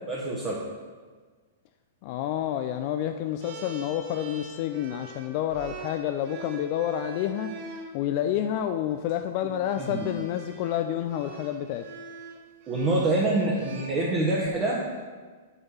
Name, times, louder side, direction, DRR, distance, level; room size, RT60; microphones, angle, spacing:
voice 1, 0.1-0.6 9.8-10.1 12.7-14.9, right 2 dB, 25° right, -4 dB, 1.2 m, -26 dB
voice 2, 2.0-7.5 7.9-11.8, left 10 dB, 50° left, 7 dB, 0.3 m, -29 dB
sound 1, 3.4-7.9 8.9-9.1 9.6-14.5, right 3 dB, 50° right, 1.0 m, -44 dB
7.2 x 3.5 x 5.7 m, 1.4 s
hypercardioid pair, 115°, 0 cm